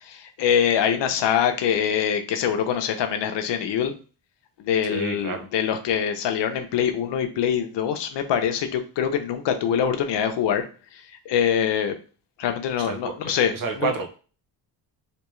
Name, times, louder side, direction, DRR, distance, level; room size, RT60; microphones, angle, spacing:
voice 1, 0.0-3.9 4.6-10.6 11.3-11.9 12.4-13.5, left 8 dB, 75° left, 6 dB, 0.7 m, -24 dB
voice 2, 4.9-5.5 12.8-14.1, right 4 dB, 50° right, 5 dB, 0.9 m, -30 dB
3.4 x 2.9 x 3.1 m, 0.37 s
cardioid pair, 115°, 43 cm